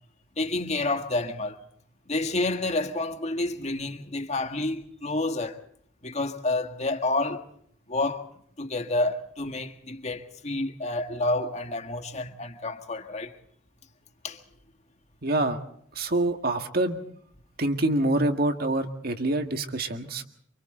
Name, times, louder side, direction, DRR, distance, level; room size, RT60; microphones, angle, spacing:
voice 1, 0.4-1.6 2.1-5.6 6.0-7.5 7.9-8.3 8.6-13.4 14.2-14.4, left 2 dB, 35° left, 1.7 m, -29 dB
voice 2, 15.2-15.6 16.0-17.0 17.6-20.2, right 2 dB, 50° right, 1.9 m, -26 dB
28.5 x 25.5 x 3.9 m
head